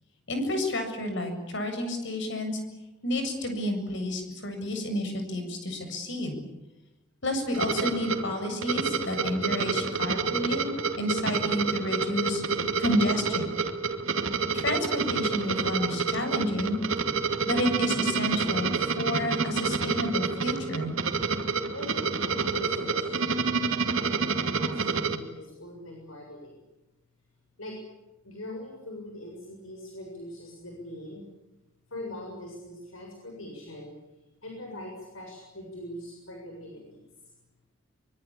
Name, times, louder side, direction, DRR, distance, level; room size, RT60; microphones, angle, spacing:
voice 1, 0.3-2.6 3.0-6.4 7.2-12.4 12.8-13.5 14.5-16.8 17.4-20.9, left 1 dB, 60° left, 6 dB, 7.6 m, -30 dB
sound 1, 7.5-25.2, right 4 dB, 80° right, 2.4 m, -28 dB
voice 2, 21.7-23.4 23.9-26.6 27.6-27.8 28.2-31.3 31.9-33.9 34.4-37.0, left 1 dB, 85° left, 1 dB, 7.3 m, -42 dB
25.0 x 24.0 x 8.7 m, 1.0 s
head